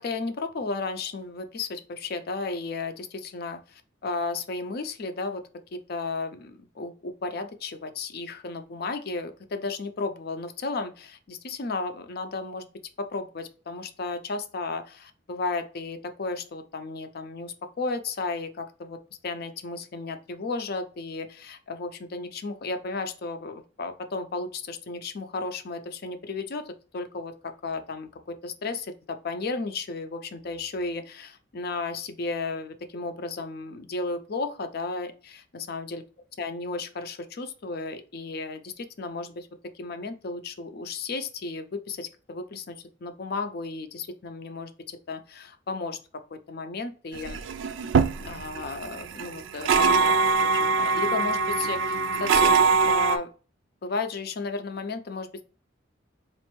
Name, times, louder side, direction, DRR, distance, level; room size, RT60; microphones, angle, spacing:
voice 1, 0.0-5.4 5.7-12.7 13.0-19.0 19.2-36.0 36.4-39.5 39.7-46.0 46.3-47.4 48.2-53.3 53.8-55.4, left 3 dB, 55° left, 8 dB, 0.5 m, -34 dB
sound 1, 47.1-53.2, right 4 dB, 70° right, 0.3 m, -23 dB
4.1 x 2.5 x 3.0 m, 0.37 s
head